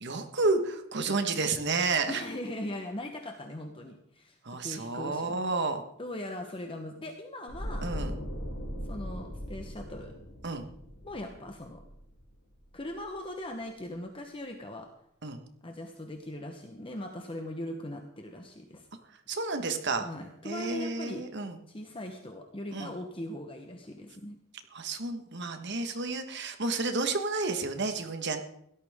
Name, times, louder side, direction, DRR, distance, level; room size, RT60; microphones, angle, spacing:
voice 1, 0.0-2.2 4.4-5.8 7.8-8.1 10.4-10.6 15.2-15.4 19.3-20.1 20.4-21.6 22.7-23.0 24.7-28.4, right 3 dB, 55° right, 7 dB, 1.5 m, -31 dB
voice 2, 2.1-5.4 6.0-7.9 8.8-10.2 11.0-11.8 12.7-14.9 15.6-18.9 20.0-21.2 21.7-24.4, left 1 dB, 25° left, 4 dB, 1.1 m, -40 dB
sound 1, 7.5-12.6 12.8-13.1, equal, 70° left, 6.1 m, -39 dB
17.0 x 13.0 x 3.7 m, 0.73 s
head